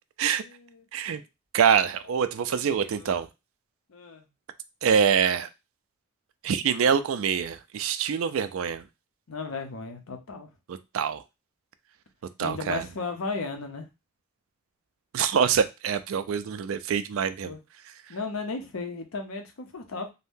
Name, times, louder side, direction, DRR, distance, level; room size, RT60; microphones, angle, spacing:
voice 1, 0.3-1.2 2.5-3.1 3.9-4.3 9.3-10.5 12.4-13.9 17.4-17.6 18.1-20.1, left 4 dB, 80° left, 5 dB, 0.7 m, -35 dB
voice 2, 1.5-3.3 4.8-5.5 6.4-8.8 10.9-11.2 12.4-12.8 15.1-17.5, right 7 dB, 70° right, 11 dB, 0.3 m, -25 dB
2.6 x 2.1 x 3.5 m, 0.25 s
head